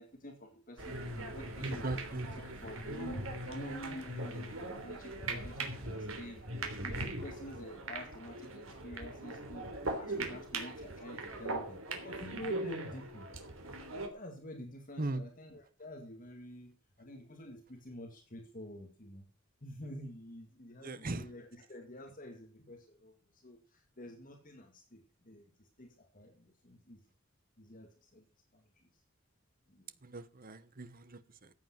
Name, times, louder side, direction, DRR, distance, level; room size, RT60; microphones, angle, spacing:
voice 1, 0.0-6.4 6.8-9.7 9.9-13.3 14.1-19.3 19.6-27.0 27.6-28.2 28.5-28.9 29.7-29.9, left 1 dB, 40° left, 2.1 m, -48 dB
sound 1, 0.8-14.1, right 2 dB, 80° right, 3.3 m, -40 dB
voice 2, 1.6-2.3 15.0-15.2 20.8-21.3 30.0-31.5, right 2 dB, 45° right, 1.1 m, -39 dB
14.5 x 8.5 x 6.0 m
head